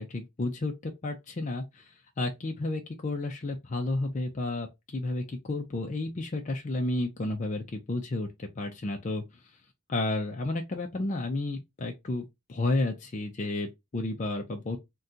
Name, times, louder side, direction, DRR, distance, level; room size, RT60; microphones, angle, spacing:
voice 1, 0.0-1.9 2.2-8.3 8.6-9.2 9.9-14.8, left 2 dB, 35° left, 0.4 m, -31 dB
2.7 x 2.2 x 3.6 m
head